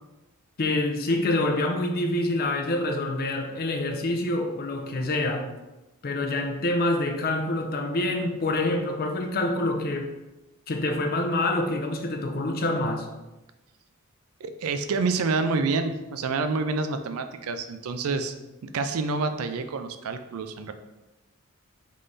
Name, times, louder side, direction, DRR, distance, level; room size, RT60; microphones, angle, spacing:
voice 1, 0.6-5.5 6.0-10.1 10.7-13.1, left 2 dB, 45° left, 0.5 m, -26 dB
voice 2, 14.4-18.3 18.6-20.7, right 4 dB, 70° right, 0.4 m, -28 dB
3.7 x 3.2 x 3.9 m
head